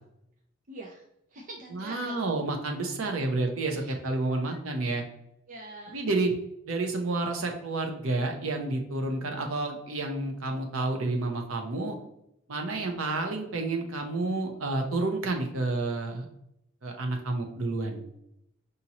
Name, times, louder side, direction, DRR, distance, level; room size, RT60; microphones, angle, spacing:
voice 1, 0.7-1.0 1.3-2.3 3.7-4.0 4.4-4.6 5.5-6.0, right 1 dB, 40° right, 0 dB, 0.5 m, -44 dB
voice 2, 1.7-5.0 5.9-6.3 6.7-12.0 12.5-16.2 16.8-18.0, right 2 dB, 85° right, 3 dB, 0.7 m, -30 dB
5.0 x 2.8 x 2.9 m, 0.79 s
head